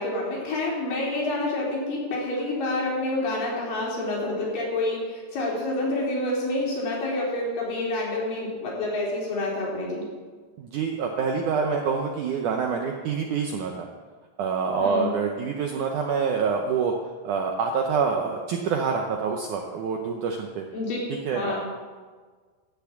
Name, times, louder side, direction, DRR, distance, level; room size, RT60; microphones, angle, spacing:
voice 1, 0.0-10.0 14.8-15.1 20.7-21.0 21.3-21.6, left 2 dB, 55° left, -4 dB, 4.9 m, -28 dB
voice 2, 10.6-13.9 14.4-16.9 17.2-20.6 21.1-21.6, right 5 dB, 85° right, 2 dB, 1.7 m, -26 dB
14.0 x 6.0 x 8.4 m, 1.5 s
omnidirectional pair, 4.8 m